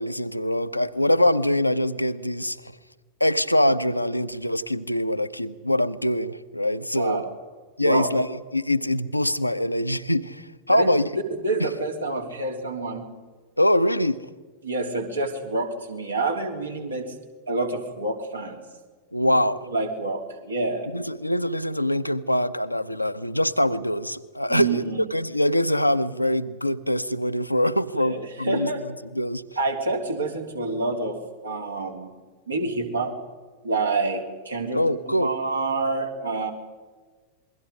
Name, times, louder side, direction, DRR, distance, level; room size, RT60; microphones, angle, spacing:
voice 1, 0.0-2.6 3.2-7.2 7.8-11.1 11.6-11.7 13.6-14.2 19.1-19.6 20.9-24.8 25.1-29.4 34.7-35.3, left 1 dB, 85° left, 11 dB, 0.9 m, -24 dB
voice 2, 6.9-7.3 7.8-8.1 10.7-10.9 11.4-13.1 14.6-17.1 17.5-18.6 19.7-20.9 24.5-25.0 27.9-28.8 29.6-32.1 32.5-33.1 33.6-34.8 35.1-36.5, right 3 dB, 75° right, 3 dB, 3.4 m, -27 dB
27.5 x 22.0 x 5.2 m, 1.4 s
figure-of-eight pair, 90°, 0 cm